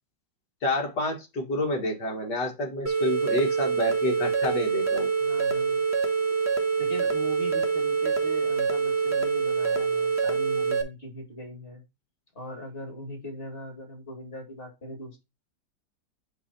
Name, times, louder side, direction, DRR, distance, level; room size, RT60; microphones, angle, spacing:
voice 1, 0.6-5.1, left 1 dB, 65° left, 1 dB, 2.4 m, -29 dB
sound 1, 2.9-10.8, right 5 dB, 20° right, 0.4 m, -25 dB
voice 2, 5.2-5.8 6.8-11.8 12.3-15.2, equal, 30° left, 0 dB, 2.5 m, -40 dB
8.4 x 2.9 x 4.3 m, 0.24 s
omnidirectional pair, 2.0 m